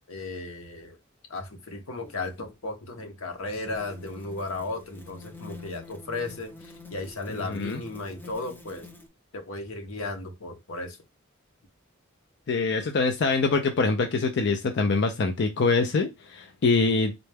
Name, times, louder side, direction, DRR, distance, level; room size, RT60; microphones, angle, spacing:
voice 1, 0.1-0.9 1.3-8.9 9.3-11.0, left 2 dB, 85° left, 0.9 m, -35 dB
sound 1, 2.0-2.2 3.7-9.1, left 2 dB, 10° left, 0.6 m, -46 dB
voice 2, 7.3-7.8 12.5-17.1, left 3 dB, 55° left, 0.5 m, -24 dB
3.9 x 2.2 x 3.3 m
head